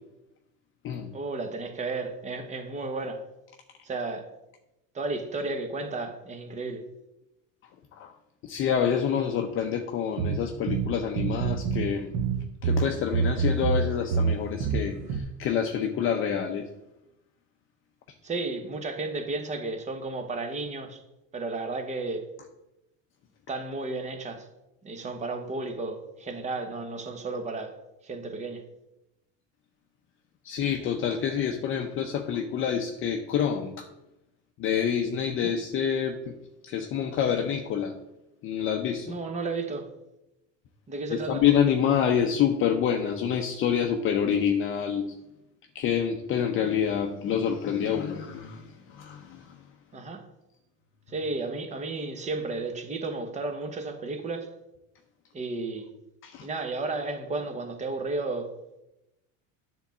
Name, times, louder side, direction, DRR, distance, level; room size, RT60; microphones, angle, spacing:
voice 1, 1.1-3.3 3.8-4.3 4.9-6.9 18.2-21.0 21.3-22.3 23.5-24.5 24.8-27.8 28.0-28.6 35.4-35.6 39.1-39.9 40.9-41.4 49.9-50.3 51.1-54.5 55.3-55.9 56.4-58.5, right 3 dB, 20° right, 1.1 m, -33 dB
voice 2, 8.5-12.1 12.6-16.7 30.4-33.9 34.6-36.3 36.6-37.9 38.4-39.1 41.1-45.1 45.7-49.4 56.2-56.5, left 8 dB, 35° left, 0.7 m, -27 dB
sound 1, 10.2-11.9 12.1-15.2, right 5 dB, 55° right, 1.1 m, -27 dB
9.8 x 3.9 x 7.2 m
cardioid pair, 150°, 34 cm